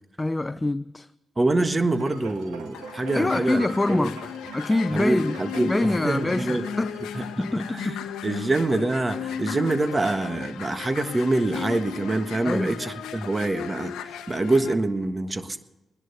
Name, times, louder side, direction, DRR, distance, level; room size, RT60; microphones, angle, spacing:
voice 1, 0.2-1.1 3.1-4.2 4.5-5.4 5.6-7.0 7.4-8.4 12.4-12.8, left 2 dB, 25° left, 0.5 m, -25 dB
voice 2, 1.4-3.6 3.9-4.1 4.9-6.7 7.1-7.5 7.7-7.9 8.2-13.9 14.3-15.6, right 2 dB, 30° right, 1.5 m, -25 dB
sound 1, 1.8-8.4 8.9-9.0, right 5 dB, 90° right, 1.8 m, -43 dB
sound 2, 2.7-14.7, left 9 dB, 85° left, 0.9 m, -35 dB
19.5 x 11.0 x 6.8 m
hypercardioid pair, 40°, 0 cm